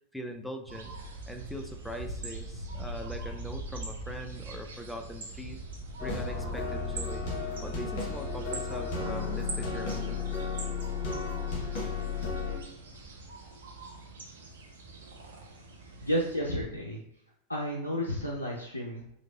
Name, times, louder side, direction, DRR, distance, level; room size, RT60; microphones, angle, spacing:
voice 1, 0.1-1.0 1.3-5.6 6.0-7.3 7.6-10.3, equal, ahead, 4 dB, 0.3 m, -41 dB
sound 1, 0.7-16.4, right 2 dB, 65° right, 0.5 m, -42 dB
sound 2, 6.0-12.6, left 5 dB, 45° left, 0.8 m, -33 dB
voice 2, 16.0-17.0 17.5-19.0, equal, 85° left, -3 dB, 0.3 m, -31 dB
3.1 x 2.4 x 2.2 m, 0.75 s
figure-of-eight pair, 90°, 0 cm